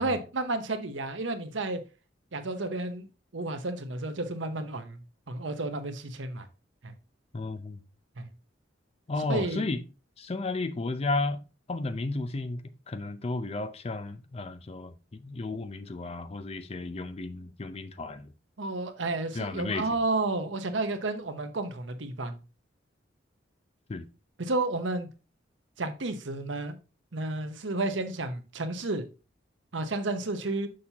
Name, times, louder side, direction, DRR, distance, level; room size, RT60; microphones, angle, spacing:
voice 1, 0.0-1.8 2.3-3.1 3.3-5.0 5.3-6.5 6.8-6.9 8.2-8.3 9.3-9.6 18.6-22.4 24.4-25.1 25.8-26.8 27.1-29.1 29.7-30.7, right 2 dB, 75° right, 0.9 m, -31 dB
voice 2, 7.3-7.8 9.1-9.8 10.2-11.4 11.7-12.6 12.9-18.3 19.3-19.9 23.9-24.1, left 3 dB, 30° left, 0.5 m, -33 dB
6.4 x 5.6 x 2.8 m
head